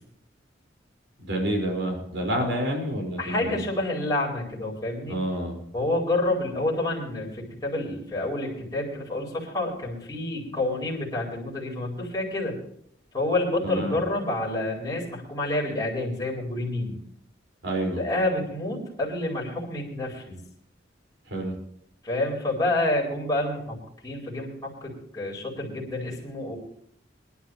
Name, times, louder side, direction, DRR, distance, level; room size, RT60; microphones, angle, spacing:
voice 1, 1.2-3.6 5.1-5.6 13.6-13.9 17.6-18.0 21.3-21.5, right 1 dB, 85° right, 1 dB, 5.2 m, -28 dB
voice 2, 3.2-5.2 5.7-12.6 13.1-17.0 17.9-20.4 22.0-23.8 24.0-26.6, left 2 dB, 20° left, -4 dB, 4.5 m, -28 dB
23.5 x 11.5 x 3.1 m, 0.70 s
head